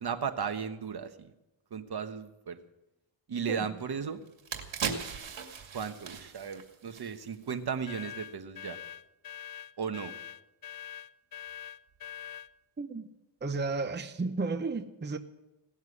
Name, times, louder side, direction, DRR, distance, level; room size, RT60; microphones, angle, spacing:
voice 1, 0.0-1.3 1.7-2.6 3.3-4.2 5.7-8.8 9.8-10.1, right 6 dB, 55° right, 1.3 m, -35 dB
sound 1, 3.8-3.9 4.3-7.6 7.9-8.0, right 6 dB, 75° right, 2.3 m, -38 dB
sound 2, 7.9-12.5, left 9 dB, 50° left, 0.6 m, -44 dB
voice 2, 12.8-13.1 13.4-15.2, right 3 dB, 25° right, 0.8 m, -33 dB
18.0 x 7.3 x 9.7 m
cardioid pair, 85°, 46 cm